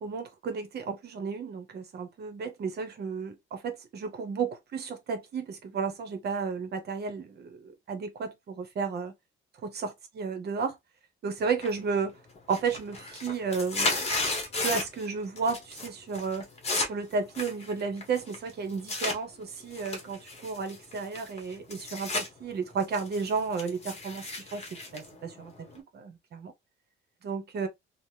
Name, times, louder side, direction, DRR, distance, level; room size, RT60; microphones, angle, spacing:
voice 1, 0.0-9.1 9.6-10.8 11.2-12.1 12.5-14.1 14.6-16.5 16.9-25.7 25.9-26.5 27.2-27.7, right 5 dB, 50° right, 0.8 m, -33 dB
sound 1, 11.6-12.0 12.3-15.1 15.4-15.9 16.1-19.2 19.7-22.3 22.6-25.8, left 2 dB, 30° left, 0.9 m, -34 dB
3.3 x 2.0 x 2.6 m
cardioid pair, 145°, 21 cm